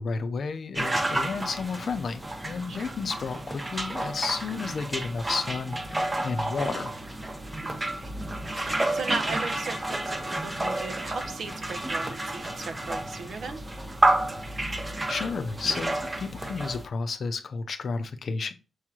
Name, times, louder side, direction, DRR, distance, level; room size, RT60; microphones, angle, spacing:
voice 1, 0.0-6.9 15.1-18.5, left 4 dB, 55° left, 8 dB, 0.7 m, -32 dB
sound 1, 0.8-16.9, right 1 dB, 20° right, 0.8 m, -30 dB
voice 2, 8.5-13.6, right 4 dB, 65° right, 6 dB, 0.8 m, -37 dB
6.3 x 3.0 x 2.4 m, 0.32 s
cardioid pair, 105°, 0 cm